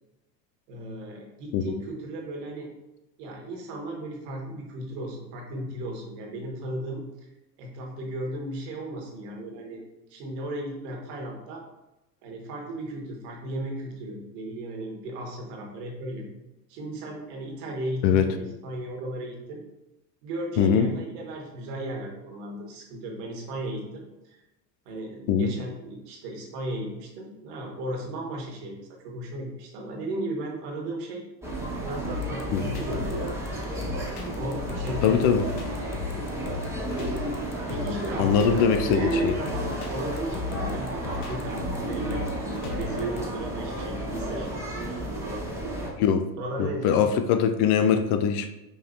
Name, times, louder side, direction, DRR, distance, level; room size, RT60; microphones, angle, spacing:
voice 1, 0.7-2.7 3.2-7.0 7.6-9.8 10.1-11.6 12.2-16.2 16.7-19.6 20.2-24.4 24.8-31.2 31.8-33.4 34.3-35.2 37.7-44.5 45.2-45.5 46.4-47.1, right 1 dB, 70° right, -1 dB, 1.4 m, -35 dB
voice 2, 20.6-20.9 25.3-25.5 32.5-32.7 35.0-35.4 38.2-39.3 46.0-46.3 46.6-48.5, left 7 dB, 50° left, 8 dB, 0.5 m, -22 dB
sound 1, 31.4-45.9, right 1 dB, 5° right, 1.0 m, -32 dB
sound 2, 32.0-43.2, left 5 dB, 70° left, 0.9 m, -36 dB
5.5 x 2.8 x 2.5 m, 0.95 s
hypercardioid pair, 85°, 50 cm